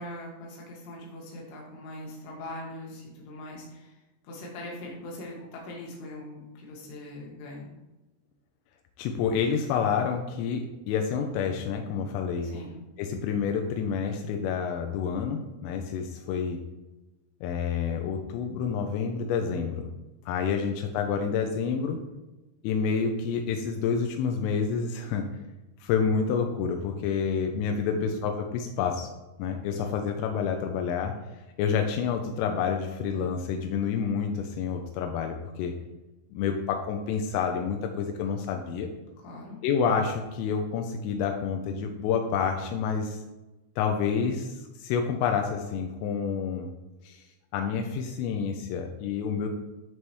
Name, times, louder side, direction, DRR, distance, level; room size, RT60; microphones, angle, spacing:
voice 1, 0.0-4.0 4.2-7.7 12.4-12.7 27.7-28.1 39.2-39.6, left 1 dB, 65° left, -2 dB, 3.9 m, -41 dB
voice 2, 9.0-12.5 13.0-16.6 17.4-19.9 20.3-22.0 22.6-25.3 25.8-29.1 29.4-31.1 31.6-35.7 36.3-38.9 39.6-43.2 43.8-46.7 47.0-47.2 47.5-49.5, left 6 dB, 85° left, 4 dB, 3.3 m, -28 dB
13.0 x 5.5 x 3.1 m, 1.1 s
omnidirectional pair, 5.8 m